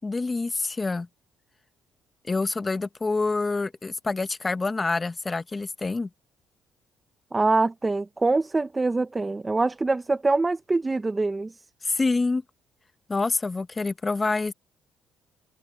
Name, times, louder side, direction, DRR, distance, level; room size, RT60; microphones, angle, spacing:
voice 1, 0.0-1.1 2.3-6.1 11.8-12.4 13.1-14.5, left 3 dB, 25° left, 1.3 m, -26 dB
voice 2, 7.3-11.5, right 3 dB, 20° right, 0.9 m, -24 dB
cardioid pair, 85°, 0 cm